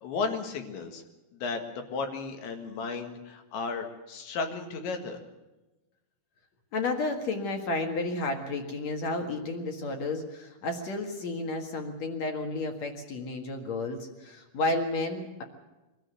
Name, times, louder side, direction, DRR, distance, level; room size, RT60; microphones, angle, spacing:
voice 1, 0.0-1.0 1.4-5.2, left 4 dB, 70° left, 5 dB, 3.9 m, -34 dB
voice 2, 6.7-15.4, left 2 dB, 50° left, 4 dB, 2.2 m, -32 dB
23.0 x 14.0 x 8.2 m, 1.0 s
omnidirectional pair, 5.6 m